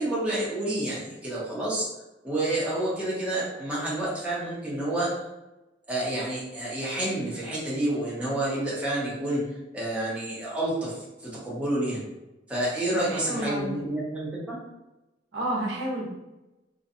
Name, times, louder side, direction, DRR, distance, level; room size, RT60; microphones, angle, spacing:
voice 1, 0.0-1.9 2.2-5.1 5.9-9.5 9.7-12.0 12.5-14.6, right 1 dB, 5° right, -8 dB, 0.7 m, -29 dB
voice 2, 12.9-13.7 15.3-16.1, right 1 dB, 75° right, -4 dB, 0.7 m, -30 dB
2.5 x 2.2 x 2.6 m, 0.99 s
head